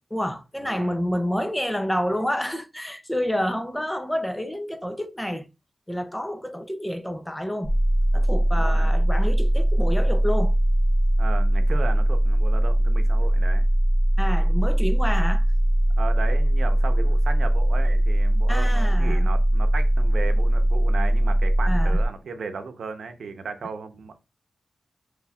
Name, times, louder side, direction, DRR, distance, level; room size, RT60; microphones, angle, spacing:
voice 1, 0.1-5.5 5.9-7.7 8.1-10.5 14.2-15.4 18.5-19.3 21.7-22.0, equal, 5° left, 0.5 m, -28 dB
voice 2, 0.6-0.9 8.5-8.9 11.2-13.7 16.0-24.1, right 4 dB, 80° right, 0.7 m, -35 dB
sound 1, 7.6-22.1, right 1 dB, 25° left, 0.8 m, -20 dB
5.8 x 3.1 x 2.3 m
wide cardioid pair, 155°, 0 cm